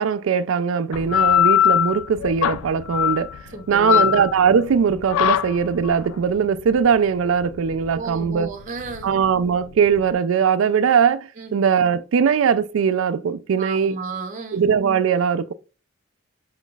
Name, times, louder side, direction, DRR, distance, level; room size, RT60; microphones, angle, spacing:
voice 1, 0.0-3.4 3.7-8.5 9.0-14.0 14.5-15.5, right 6 dB, 70° right, 0.3 m, -20 dB
sound 1, 0.9-10.1, left 11 dB, 85° left, 0.3 m, -22 dB
voice 2, 3.5-4.1 7.9-9.1 11.4-11.6 13.6-14.7, right 3 dB, 40° right, 0.7 m, -33 dB
5.1 x 3.8 x 2.3 m
head